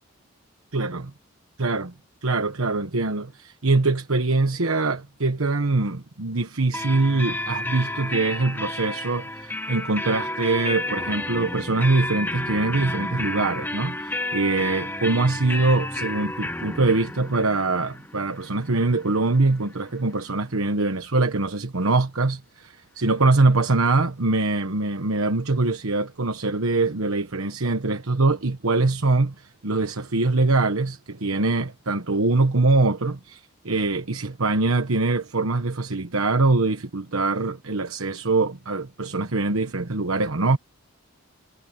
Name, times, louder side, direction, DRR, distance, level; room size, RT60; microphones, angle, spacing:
voice 1, 0.7-1.1 1.6-1.9 2.2-40.6, right 3 dB, 80° right, 1.2 m, -23 dB
sound 1, 6.7-20.3, left 1 dB, 10° left, 1.0 m, -32 dB
head